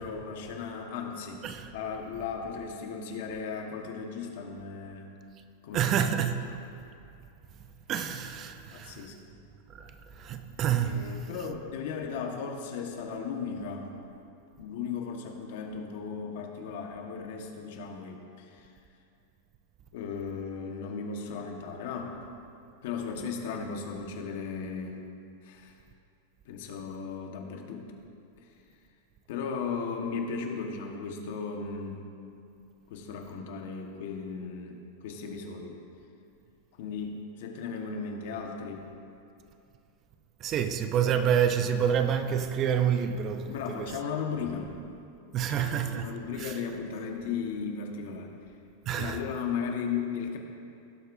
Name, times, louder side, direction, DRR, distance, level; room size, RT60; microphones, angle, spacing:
voice 1, 0.0-1.5 1.7-5.1 5.6-6.1 6.4-6.6 8.7-9.2 10.8-13.9 14.6-18.7 19.9-22.2 22.8-25.0 25.4-25.7 26.5-27.9 29.3-32.1 32.9-35.8 36.8-38.9 43.5-44.7 45.4-48.3 48.9-50.4, left 5 dB, 65° left, 1.4 m, -36 dB
voice 2, 5.7-6.5 7.9-8.9 9.8-9.9 10.2-11.0 40.4-43.8 45.3-46.1 46.4-46.5 48.9-49.2, right 8 dB, 30° right, 0.6 m, -28 dB
18.0 x 8.0 x 2.7 m
supercardioid pair, 140°, 0 cm